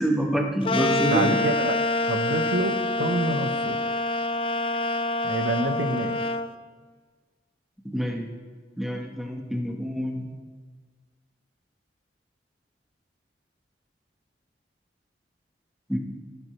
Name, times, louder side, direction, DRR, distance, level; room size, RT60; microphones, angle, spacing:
voice 1, 0.0-1.4 7.8-8.3 8.8-10.2 15.9-16.0, equal, ahead, 0 dB, 1.4 m, -26 dB
sound 1, 0.6-6.5, left 2 dB, 30° left, 0.5 m, -26 dB
voice 2, 1.0-1.8 2.0-3.8 5.2-6.2, right 2 dB, 90° right, 7 dB, 1.2 m, -27 dB
28.0 x 11.5 x 3.4 m, 1.5 s
head